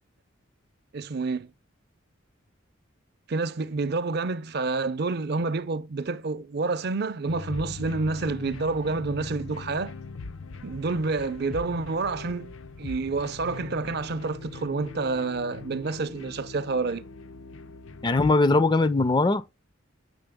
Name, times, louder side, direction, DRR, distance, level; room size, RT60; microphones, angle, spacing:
voice 1, 0.9-1.5 3.3-9.9 10.6-12.5 12.8-17.0, right 3 dB, 55° right, 0.5 m, -28 dB
sound 1, 7.3-18.3, left 4 dB, 75° left, 0.6 m, -41 dB
voice 2, 18.0-19.6, left 3 dB, 20° left, 0.4 m, -21 dB
7.7 x 5.8 x 3.5 m
head